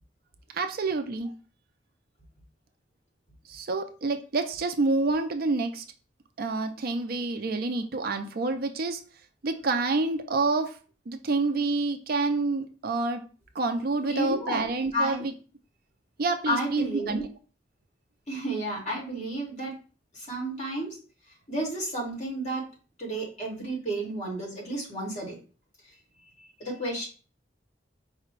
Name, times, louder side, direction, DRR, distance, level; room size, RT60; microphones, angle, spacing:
voice 1, 0.5-1.3 3.5-5.8 6.4-9.0 9.4-10.7 11.1-13.2 13.6-15.3 16.2-17.2, right 3 dB, 55° right, 7 dB, 0.5 m, -28 dB
voice 2, 14.1-14.6 14.9-15.2 16.5-17.2 18.3-19.8 20.1-21.0 21.5-22.7 23.0-25.4 26.4-27.1, right 1 dB, 40° left, -2 dB, 2.0 m, -31 dB
4.9 x 2.2 x 4.5 m, 0.37 s
head